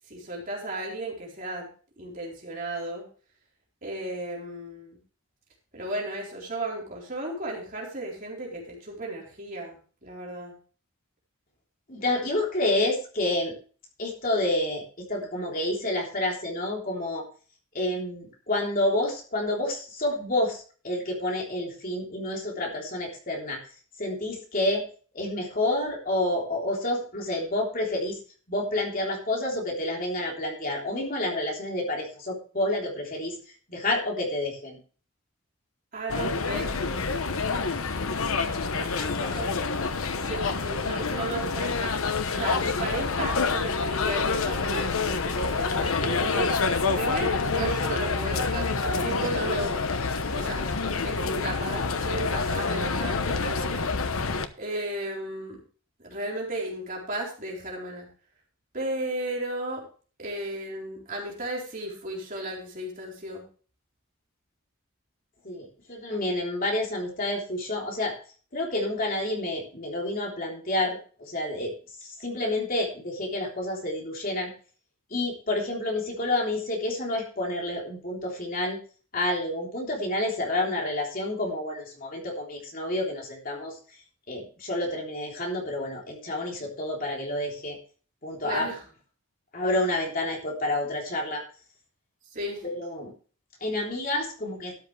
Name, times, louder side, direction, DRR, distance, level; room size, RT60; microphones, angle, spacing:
voice 1, 0.1-1.7 2.0-3.1 3.8-5.0 5.7-9.8 10.0-10.6 35.9-36.9 39.3-39.5 40.2-42.0 42.3-46.5 47.0-48.7 49.0-53.9 54.6-55.6 56.0-58.1 58.7-59.8 60.2-63.4 88.4-88.8 92.3-92.6, right 1 dB, 40° right, -2 dB, 4.1 m, -34 dB
voice 2, 11.9-13.6 14.0-17.2 17.7-23.6 24.0-24.8 25.1-28.2 28.5-33.4 33.7-34.8 38.7-39.5 65.4-68.2 68.5-71.7 72.0-74.5 75.1-78.8 79.1-83.8 84.3-87.8 88.2-88.7 89.5-91.4 92.6-93.1 93.6-94.8, left 1 dB, 40° left, -1 dB, 3.5 m, -29 dB
sound 1, 36.1-54.5, left 4 dB, 80° left, 1.0 m, -27 dB
12.5 x 10.5 x 3.3 m, 0.39 s
head